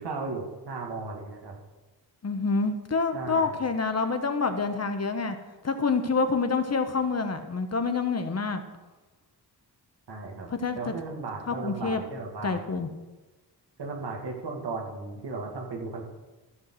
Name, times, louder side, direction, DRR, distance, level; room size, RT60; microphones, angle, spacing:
voice 1, 0.0-1.6 3.1-3.6 10.1-12.6 13.8-16.1, right 3 dB, 80° right, 0 dB, 2.3 m, -36 dB
voice 2, 2.2-5.4 5.6-8.6 10.5-10.9 11.5-12.0 12.4-12.9, left 4 dB, 40° left, 8 dB, 1.0 m, -27 dB
13.5 x 4.6 x 7.7 m, 1.2 s
wide cardioid pair, 115°, 40 cm